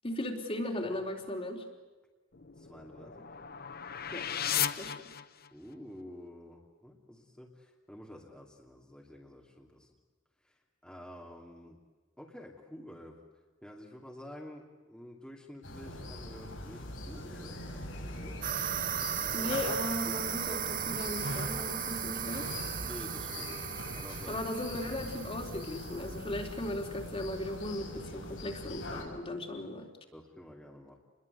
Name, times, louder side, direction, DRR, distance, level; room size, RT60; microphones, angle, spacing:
voice 1, 0.0-1.6 4.1-4.3 4.8-5.0 19.3-22.5 24.3-29.9, left 1 dB, 30° left, 2 dB, 3.8 m, -37 dB
sound 1, 2.3-5.7, left 10 dB, 50° left, 1.1 m, -36 dB
voice 2, 2.6-3.3 5.5-9.9 10.4-11.8 12.2-13.2 13.6-18.4 19.2-19.6 22.8-24.4 24.7-24.8 30.1-31.0, left 1 dB, 5° left, -2 dB, 2.8 m, -50 dB
sound 2, 15.6-29.0, left 1 dB, 90° left, 7.6 m, -42 dB
sound 3, 18.4-26.6, right 10 dB, 45° right, 0.8 m, -37 dB
29.0 x 22.0 x 8.2 m, 1.3 s
head